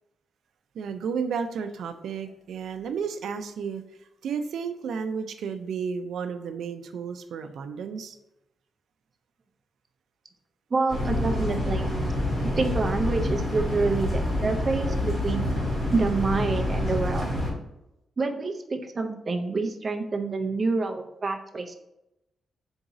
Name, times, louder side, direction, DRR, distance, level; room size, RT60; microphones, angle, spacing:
voice 1, 0.8-3.8 4.2-8.2, right 6 dB, 90° right, 8 dB, 0.3 m, -32 dB
voice 2, 10.7-11.9 12.6-15.5 15.9-17.3 18.2-21.8, right 3 dB, 30° right, 4 dB, 0.5 m, -27 dB
sound 1, 10.9-17.5, left 1 dB, 10° left, 1.4 m, -27 dB
3.8 x 2.7 x 4.7 m, 0.88 s
wide cardioid pair, 165°, 0 cm